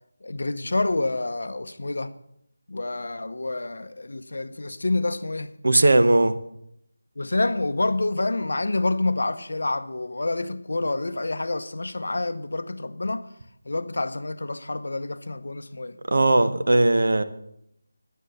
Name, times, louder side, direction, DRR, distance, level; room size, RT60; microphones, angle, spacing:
voice 1, 0.2-2.1 2.7-5.5 7.2-13.3 13.6-16.0, left 2 dB, 55° left, 0.7 m, -28 dB
voice 2, 5.6-6.3 16.1-17.2, right 2 dB, 55° right, 0.8 m, -18 dB
10.0 x 7.5 x 6.6 m
figure-of-eight pair, 180°, 0 cm